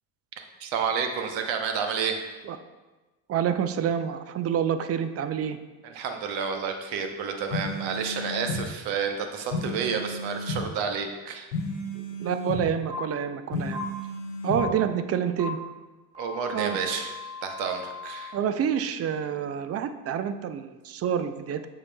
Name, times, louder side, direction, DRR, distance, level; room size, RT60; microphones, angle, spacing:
voice 1, 0.6-2.2 5.8-11.5 14.7-14.8 16.2-17.2 17.4-18.3, right 6 dB, 60° right, 5 dB, 1.0 m, -30 dB
voice 2, 3.3-5.6 11.9-13.9 14.4-15.6 16.5-16.8 18.3-21.7, right 8 dB, 30° right, 10 dB, 0.4 m, -28 dB
sound 1, 7.5-8.6 9.5-10.6 11.5-12.6 13.5-14.6, left 2 dB, 90° left, 0.9 m, -32 dB
sound 2, 12.9-13.0 13.7-13.8 14.6-14.7 15.4-15.5 16.1-18.3, left 3 dB, 15° right, 2.0 m, -38 dB
7.8 x 5.6 x 2.3 m, 1.2 s
hypercardioid pair, 65°, 50 cm